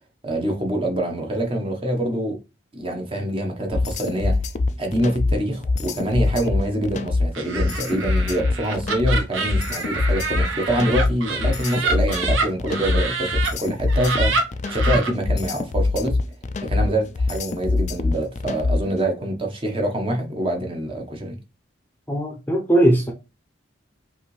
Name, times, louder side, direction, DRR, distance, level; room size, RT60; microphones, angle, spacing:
voice 1, 0.2-2.4 2.7-4.3 4.8-14.3 14.7-16.2 16.6-21.4, right 1 dB, 25° right, 0.9 m, -25 dB
sound 1, 3.7-19.0, left 3 dB, 35° left, 0.3 m, -23 dB
Laughter, 7.3-13.5 13.9-15.1, right 4 dB, 80° right, 0.9 m, -27 dB
voice 2, 22.1-23.1, right 1 dB, 10° left, 0.7 m, -19 dB
5.4 x 2.7 x 3.1 m
head